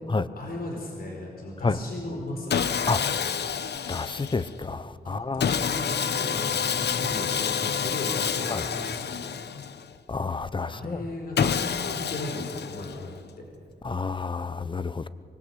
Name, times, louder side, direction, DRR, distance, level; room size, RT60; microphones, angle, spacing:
voice 1, 0.3-2.5 5.0-9.3 10.6-13.4, left 1 dB, 60° left, 4.7 m, -36 dB
Sawing, 2.5-4.5 5.4-9.9 11.4-13.2, left 7 dB, 80° left, 0.9 m, -28 dB
voice 2, 3.9-5.5 8.5-8.6 10.1-11.0 13.8-15.1, left 4 dB, 30° left, 0.9 m, -29 dB
25.0 x 21.0 x 8.2 m
wide cardioid pair, 120°, 17 cm